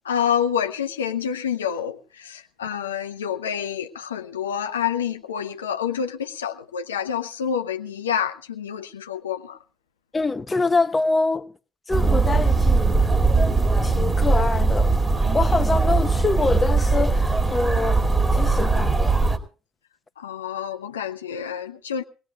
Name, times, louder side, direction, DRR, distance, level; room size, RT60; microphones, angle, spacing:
voice 1, 0.0-9.6 20.2-22.0, left 8 dB, 90° left, 0.7 m, -28 dB
voice 2, 10.1-11.5 11.9-13.0 13.8-14.9 15.3-18.0 18.3-19.2, left 3 dB, 25° left, 1.0 m, -25 dB
sound 1, 11.9-19.4, right 3 dB, 20° right, 2.4 m, -20 dB
24.0 x 18.0 x 2.3 m
hypercardioid pair, 55°, 0 cm